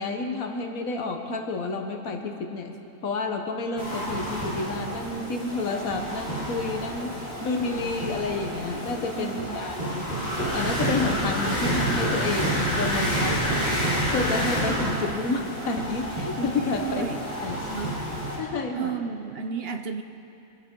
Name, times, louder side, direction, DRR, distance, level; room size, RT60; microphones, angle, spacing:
voice 1, 0.0-2.8 3.0-7.1 7.4-10.0 10.5-13.4 14.1-17.1 17.4-17.6 18.4-18.9, left 3 dB, 85° left, 4 dB, 1.5 m, -30 dB
sound 1, 3.8-18.4, equal, 35° right, 4.6 m, -29 dB
voice 2, 7.3-8.1 9.2-9.7 16.8-17.2 17.7-18.0 18.7-20.0, right 6 dB, 55° right, 7 dB, 0.8 m, -33 dB
25.5 x 12.0 x 3.7 m, 2.8 s
omnidirectional pair, 1.4 m